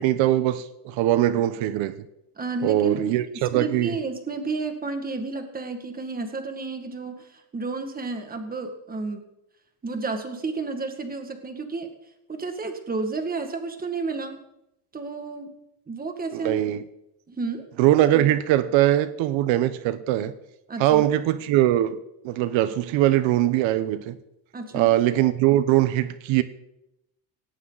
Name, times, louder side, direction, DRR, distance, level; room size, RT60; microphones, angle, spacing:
voice 1, 0.0-1.9 2.6-4.0 16.3-16.8 17.8-20.3 20.8-22.0 22.2-24.2 24.7-26.4, right 13 dB, 85° right, 1.1 m, -21 dB
voice 2, 2.4-3.1 3.5-9.2 9.8-11.9 12.3-14.4 14.9-15.5 15.9-16.6 17.3-17.7 20.7-21.0 24.5-24.9, right 3 dB, 20° right, 2.1 m, -31 dB
17.5 x 17.5 x 4.1 m
cardioid pair, 160°, 45 cm